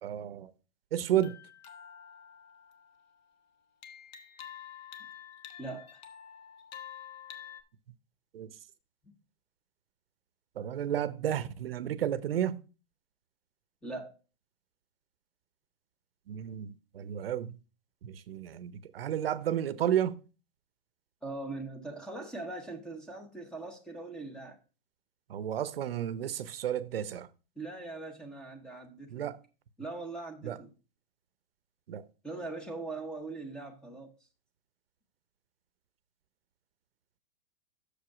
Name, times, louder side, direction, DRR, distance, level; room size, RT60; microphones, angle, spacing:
voice 1, 0.0-0.5 0.9-1.4 8.3-8.5 10.6-12.6 16.3-17.5 18.0-20.2 25.3-27.3 29.1-29.4 30.4-30.6 31.9-32.0, right 10 dB, 80° right, 0.7 m, -32 dB
sound 1, 1.0-3.3 3.8-7.6, left 9 dB, 50° left, 1.1 m, -48 dB
voice 2, 5.6-6.0 9.0-9.2 13.8-14.1 21.2-24.6 27.6-29.3 29.8-30.7 32.2-34.1, right 2 dB, 5° left, 0.8 m, -41 dB
6.6 x 4.9 x 5.8 m
hypercardioid pair, 150°, 29 cm